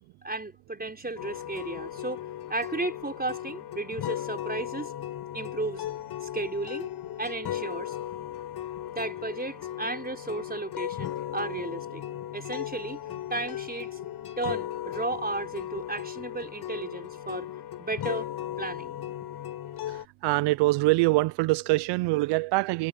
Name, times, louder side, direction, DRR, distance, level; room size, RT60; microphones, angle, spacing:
voice 1, 0.2-4.9 5.3-5.9 6.2-6.9 7.2-8.0 8.9-12.0 12.3-13.0 13.3-14.1 14.4-17.5 17.8-18.3 18.6-19.0, right 2 dB, 20° right, 5.2 m, -34 dB
sound 1, 1.2-20.1, left 12 dB, 75° left, 4.1 m, -36 dB
voice 2, 20.2-22.9, right 20 dB, 90° right, 0.6 m, -24 dB
supercardioid pair, 50°, 40 cm